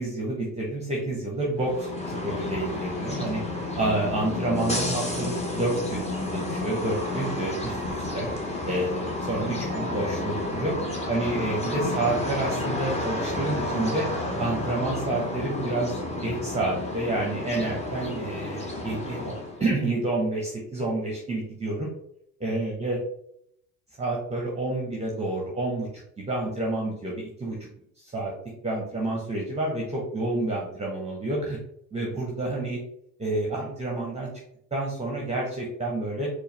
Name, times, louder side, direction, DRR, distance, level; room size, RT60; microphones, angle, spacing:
voice 1, 0.0-3.4 3.7-8.3 8.6-10.7 11.1-14.1 14.4-19.3 19.6-21.9 22.4-23.0 24.0-25.9 26.2-27.6 28.0-28.3 28.6-31.6 31.9-32.8 33.2-34.3 34.7-36.3, right 2 dB, 15° right, -2 dB, 0.9 m, -29 dB
sound 1, 1.5-19.6, left 2 dB, 15° left, 1.1 m, -31 dB
4.6 x 2.3 x 3.3 m, 0.73 s
hypercardioid pair, 70°, 49 cm